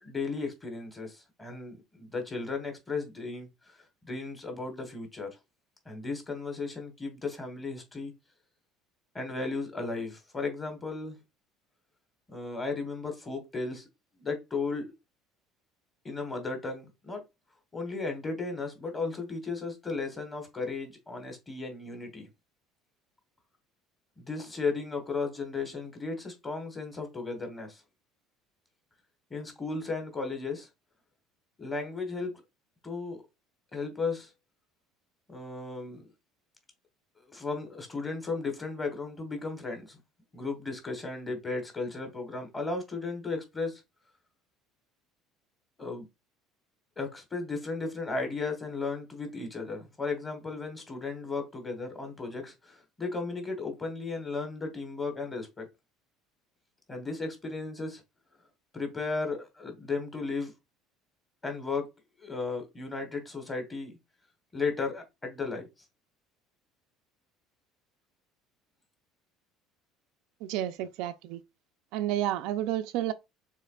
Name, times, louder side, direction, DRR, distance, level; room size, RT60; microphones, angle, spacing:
voice 1, 0.0-3.8 4.0-5.3 5.8-8.1 9.1-11.2 12.3-13.9 14.2-14.8 16.0-17.2 17.7-22.3 24.2-27.8 29.3-30.7 31.6-32.3 32.8-33.2 33.7-34.3 35.3-36.1 37.3-40.0 40.3-43.8 45.8-46.0 47.0-55.7 56.9-58.0 58.7-60.5 61.4-61.9 62.2-63.9 64.5-65.7, left 4 dB, 15° left, 1.2 m, -35 dB
voice 2, 70.4-71.4 71.9-73.1, right 13 dB, 65° right, 0.4 m, -30 dB
6.6 x 3.2 x 2.3 m
cardioid pair, 180°, 0 cm